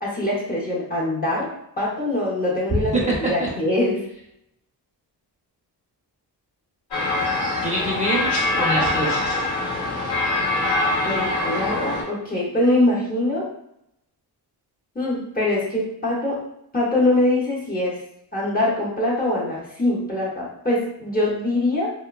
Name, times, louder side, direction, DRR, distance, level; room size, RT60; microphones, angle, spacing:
voice 1, 0.0-4.0 11.0-13.5 14.9-16.4 16.7-18.0 18.3-21.9, left 1 dB, 25° left, -5 dB, 0.6 m, -23 dB
voice 2, 2.7-3.5 7.6-9.3, right 1 dB, 20° right, -5 dB, 0.6 m, -24 dB
sound 1, 6.9-12.0, left 2 dB, 75° left, 1.0 m, -23 dB
2.7 x 2.2 x 2.3 m, 0.78 s
wide cardioid pair, 120°, 41 cm